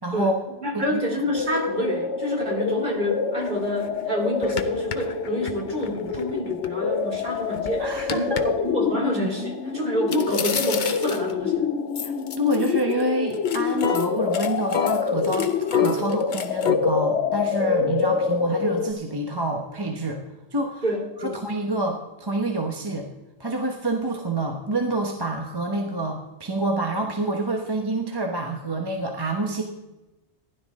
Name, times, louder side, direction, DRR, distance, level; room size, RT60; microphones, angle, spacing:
voice 1, 0.0-0.3 0.7-1.0 7.8-8.4 12.0-20.2 20.5-20.8 21.2-23.1 23.4-29.6, right 1 dB, 20° right, 2 dB, 1.1 m, -27 dB
voice 2, 0.6-11.7 20.8-21.4, equal, 40° right, 0 dB, 2.8 m, -28 dB
sound 1, 1.3-18.9, left 5 dB, 75° left, 1.1 m, -26 dB
sound 2, 3.4-3.5 3.9-4.0 4.4-6.7 7.1-8.4 10.1-11.4 11.9-13.0 13.3-16.8, left 7 dB, 45° left, 0.8 m, -28 dB
16.0 x 11.5 x 3.6 m, 1.0 s
omnidirectional pair, 1.2 m